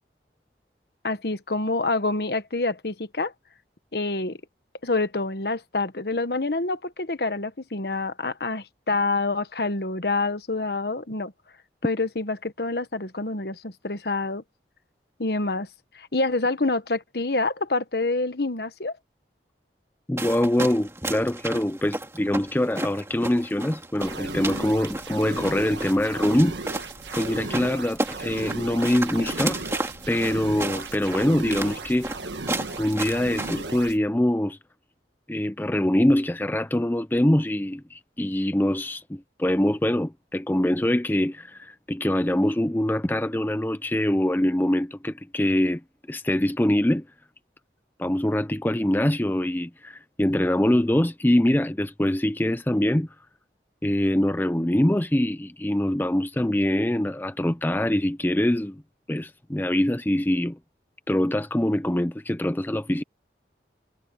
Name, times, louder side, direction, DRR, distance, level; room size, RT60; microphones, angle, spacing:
voice 1, 1.0-3.3 3.9-4.4 4.8-11.3 11.8-14.4 15.2-15.7 15.9-19.0, left 3 dB, 60° left, 1.3 m, -27 dB
voice 2, 20.1-26.6 27.1-29.6 30.1-32.1 32.8-34.6 35.3-45.8 46.1-47.0 48.0-53.1 53.8-58.8 59.1-60.6 61.1-63.0, left 1 dB, 10° left, 0.5 m, -24 dB
sound 1, 20.2-33.8, right 2 dB, 15° right, 2.3 m, -33 dB
sound 2, 24.0-34.0, right 3 dB, 80° right, 1.4 m, -36 dB
head